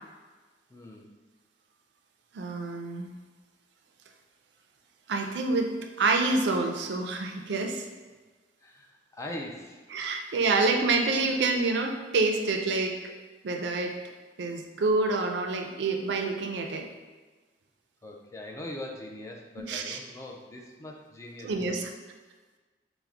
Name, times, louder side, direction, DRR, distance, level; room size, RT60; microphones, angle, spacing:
voice 1, 0.7-1.0 8.6-9.8 10.1-10.4 18.0-21.7, left 1 dB, 15° left, 0 dB, 0.4 m, -42 dB
voice 2, 2.3-3.1 5.1-7.8 9.9-13.1 13.4-13.9 14.4-16.9 19.6-20.0 21.4-21.9, right 3 dB, 70° right, 4 dB, 0.4 m, -27 dB
4.5 x 2.1 x 3.6 m, 1.3 s
head